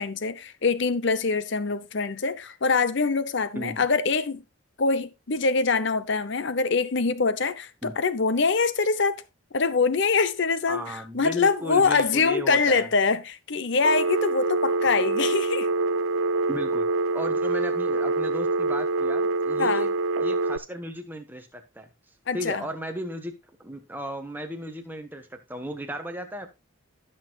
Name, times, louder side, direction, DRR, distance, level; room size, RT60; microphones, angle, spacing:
voice 1, 0.0-4.4 4.8-9.2 9.5-10.8 11.1-15.7 19.6-19.9 22.3-22.6, left 4 dB, 55° left, 0.7 m, -24 dB
voice 2, 3.5-3.9 7.8-7.9 10.7-12.9 16.5-19.9 20.2-21.9 22.3-23.3 23.6-26.5, equal, 10° right, 1.1 m, -35 dB
Telephone, 13.8-20.6, right 3 dB, 70° right, 0.4 m, -25 dB
16.0 x 6.4 x 2.3 m
head